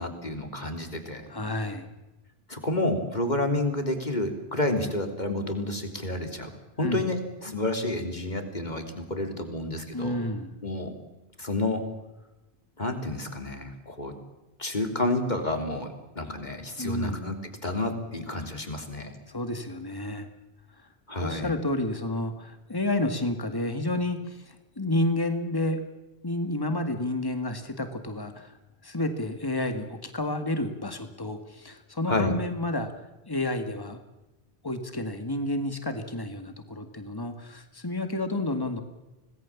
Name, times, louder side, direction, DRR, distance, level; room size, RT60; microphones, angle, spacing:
voice 1, 0.0-1.3 2.5-6.5 6.8-10.2 10.6-10.9 11.4-11.8 12.8-14.2 14.6-17.4 17.6-19.1 21.1-21.5 32.1-32.4, left 1 dB, 45° left, 6 dB, 3.4 m, -30 dB
voice 2, 1.3-1.9 6.8-7.1 9.9-10.6 16.8-17.3 19.3-20.3 21.2-25.8 26.2-28.5 28.8-32.9 33.3-34.0 34.6-38.8, left 1 dB, 20° left, 8 dB, 2.0 m, -30 dB
26.0 x 19.0 x 7.3 m, 1.0 s
omnidirectional pair, 1.1 m